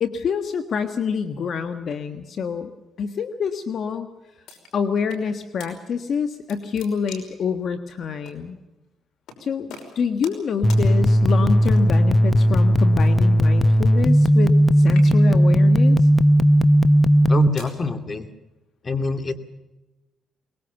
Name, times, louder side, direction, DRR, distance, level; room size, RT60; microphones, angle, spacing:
voice 1, 0.0-2.7 3.0-4.1 4.7-8.6 9.4-16.1, left 6 dB, 60° left, 8 dB, 1.5 m, -27 dB
sound 1, 4.5-5.2 5.6-5.7 6.1-7.4 8.3-8.4 9.3-9.4 9.7-10.4 10.7-10.8 11.6-12.0 13.0-14.6 14.9-15.4 16.1-16.4 17.1-17.8, left 5 dB, 80° left, 5.7 m, -43 dB
sound 2, 10.6-17.5, equal, 15° left, 0.9 m, -16 dB
voice 2, 17.3-18.3 18.8-19.4, left 4 dB, 35° left, 9 dB, 2.5 m, -25 dB
23.5 x 21.0 x 7.0 m, 1.0 s
cardioid pair, 90°, 0 cm